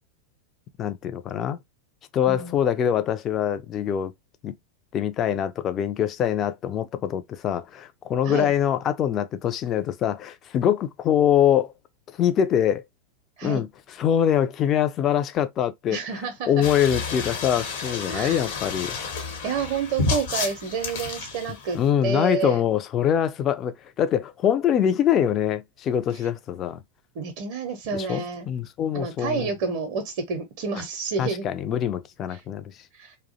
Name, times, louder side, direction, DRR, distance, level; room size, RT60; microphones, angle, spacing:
voice 1, 0.8-1.6 2.1-4.1 4.4-4.5 4.9-11.7 12.2-12.8 13.4-13.7 14.0-16.0 16.5-19.0 21.7-26.8 27.9-29.5 31.2-32.7, left 9 dB, 30° left, 0.3 m, -24 dB
voice 2, 2.3-2.6 8.2-8.5 13.4-13.6 15.9-16.6 18.1-18.4 19.4-21.8 22.0-22.6 27.2-28.5 28.9-31.5 32.3-32.4 32.9-33.2, right 5 dB, 50° right, 0.5 m, -29 dB
sound 1, 16.6-21.9, left 4 dB, 55° left, 0.8 m, -31 dB
2.3 x 2.0 x 2.6 m
figure-of-eight pair, 90°, 0 cm